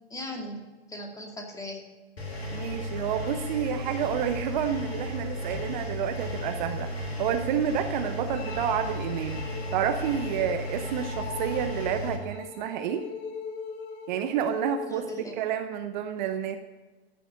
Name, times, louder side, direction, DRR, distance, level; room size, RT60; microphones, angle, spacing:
voice 1, 0.1-1.8 14.9-15.3, left 1 dB, 10° left, 1 dB, 2.3 m, -38 dB
Engine, 2.2-12.2, left 1 dB, 75° left, 2.2 m, -34 dB
voice 2, 2.5-9.4 9.7-13.0 14.1-15.1 15.4-16.6, right 9 dB, 50° right, 8 dB, 0.8 m, -29 dB
sound 1, 8.3-15.3, left 6 dB, 35° left, 1.2 m, -40 dB
14.0 x 6.0 x 6.5 m, 1.2 s
figure-of-eight pair, 95°, 31 cm